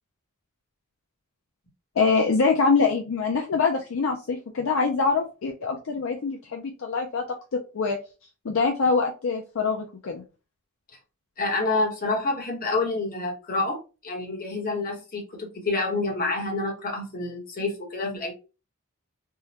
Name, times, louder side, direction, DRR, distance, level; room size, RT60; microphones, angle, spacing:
voice 1, 2.0-8.0 8.4-10.2, left 4 dB, 60° left, 2 dB, 0.4 m, -24 dB
voice 2, 11.4-18.3, left 3 dB, 40° left, 0 dB, 1.1 m, -28 dB
3.6 x 2.2 x 2.8 m, 0.31 s
head